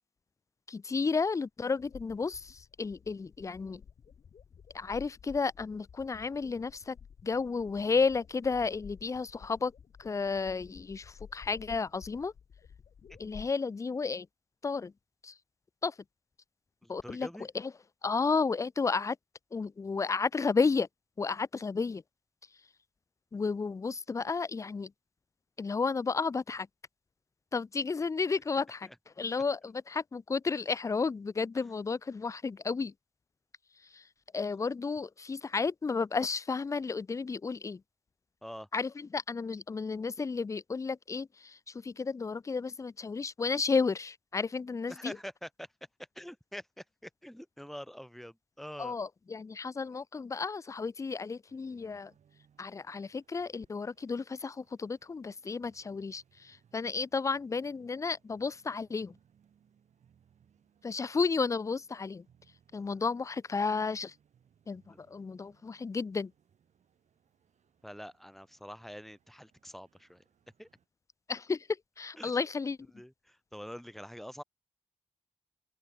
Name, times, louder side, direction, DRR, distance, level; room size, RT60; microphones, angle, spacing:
voice 1, 0.7-3.8 4.7-7.0 7.2-9.7 10.0-12.3 13.2-14.3 14.6-14.9 15.2-15.3 15.8-15.9 16.9-17.3 17.5-17.7 18.0-19.2 19.5-20.9 21.2-22.0 23.3-24.9 25.6-26.7 27.5-28.9 29.2-32.9 33.9-34.0 34.3-37.8 38.7-45.2 48.8-52.1 52.6-59.1 60.8-62.2 62.7-64.1 64.7-66.3 71.3-71.7 72.0-72.8, left 4 dB, 25° left, 0.3 m, -32 dB
sound 1, 1.8-13.5, left 7 dB, 60° left, 0.7 m, -53 dB
voice 2, 16.8-17.5 28.8-29.0 29.3-29.4 38.4-38.7 44.9-45.7 46.1-49.0 64.9-65.0 67.8-70.2 70.6-70.7 72.2-72.4 72.9-74.4, equal, ahead, 0.9 m, -46 dB
sound 2, 51.5-70.9, right 8 dB, 85° right, 4.0 m, -69 dB
open air
cardioid pair, 85°, 12 cm